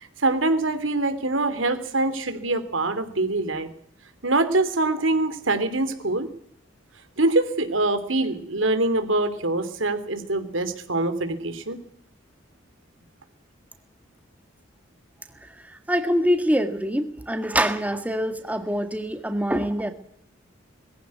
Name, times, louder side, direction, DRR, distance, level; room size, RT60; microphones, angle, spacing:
voice 1, 0.0-3.7 4.2-6.3 7.2-11.8, right 2 dB, 85° right, 10 dB, 3.1 m, -24 dB
voice 2, 15.9-19.9, equal, 10° right, 7 dB, 1.7 m, -24 dB
21.5 x 15.5 x 9.6 m, 0.70 s
head